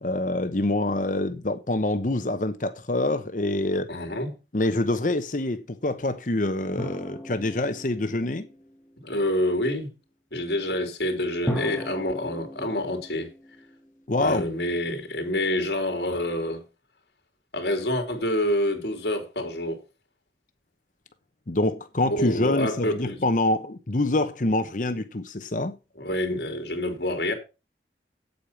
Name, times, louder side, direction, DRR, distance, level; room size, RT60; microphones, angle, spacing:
voice 1, 0.0-4.0 4.5-8.5 14.1-14.5 21.5-25.8, left 2 dB, 45° left, 0.9 m, -26 dB
voice 2, 3.9-4.3 9.0-9.9 10.3-13.3 14.2-16.6 17.5-19.8 22.1-23.2 26.0-27.3, left 1 dB, 70° left, 3.3 m, -27 dB
sound 1, 6.8-9.1 11.5-14.4, equal, 5° left, 1.6 m, -37 dB
8.6 x 8.4 x 5.8 m
head